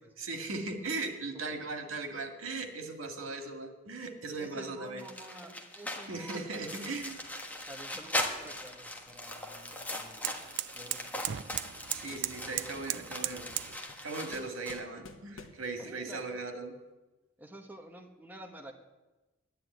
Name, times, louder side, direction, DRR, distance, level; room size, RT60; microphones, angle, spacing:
voice 1, 0.2-5.0 6.0-7.2 11.9-13.5 14.0-16.7, right 3 dB, 90° right, 5 dB, 1.9 m, -38 dB
voice 2, 3.0-3.5 4.4-7.0 7.7-10.3 10.7-11.4 13.1-13.2 15.8-16.4 17.4-18.7, right 1 dB, 10° right, 2 dB, 1.2 m, -50 dB
sound 1, 5.0-14.8, left 1 dB, 10° left, 1.3 m, -40 dB
sound 2, 7.0-13.8, right 13 dB, 60° right, 0.4 m, -40 dB
sound 3, 10.4-11.8 12.1-12.7 13.1-15.8, left 4 dB, 75° left, 1.2 m, -54 dB
10.5 x 10.5 x 9.2 m, 1.1 s
head